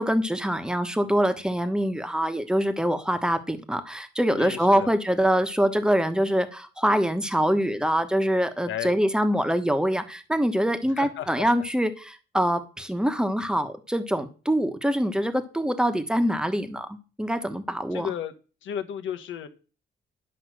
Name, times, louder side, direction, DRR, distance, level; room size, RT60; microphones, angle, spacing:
voice 1, 0.0-18.1, equal, 5° right, 9 dB, 1.2 m, -24 dB
voice 2, 4.3-4.9 8.7-9.0 10.9-11.5 17.9-18.3 18.6-19.5, left 9 dB, 75° left, 9 dB, 1.3 m, -33 dB
10.0 x 5.5 x 6.4 m, 0.36 s
cardioid pair, 90°, 20 cm